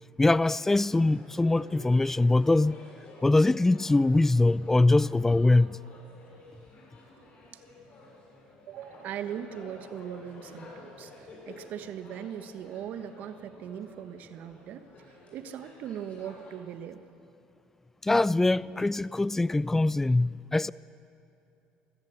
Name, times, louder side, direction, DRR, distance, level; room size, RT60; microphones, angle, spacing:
voice 1, 0.2-2.8 3.2-5.8 18.0-20.7, left 2 dB, 10° left, 0.4 m, -23 dB
sound 1, 0.8-16.6, left 2 dB, 45° left, 7.2 m, -51 dB
voice 2, 8.7-17.0 18.7-18.8, right 9 dB, 60° right, 1.3 m, -40 dB
23.0 x 14.5 x 8.3 m
supercardioid pair, 95°, 3 cm